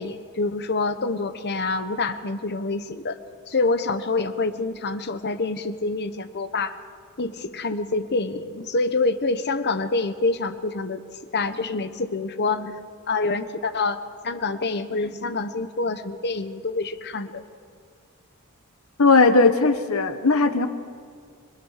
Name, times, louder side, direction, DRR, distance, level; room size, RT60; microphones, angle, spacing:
voice 1, 0.0-3.2 3.5-6.8 7.2-11.0 11.3-17.4, left 3 dB, 50° left, 10 dB, 1.0 m, -26 dB
voice 2, 19.0-20.7, left 3 dB, 70° left, 9 dB, 1.3 m, -18 dB
25.5 x 20.5 x 6.6 m, 2.1 s
head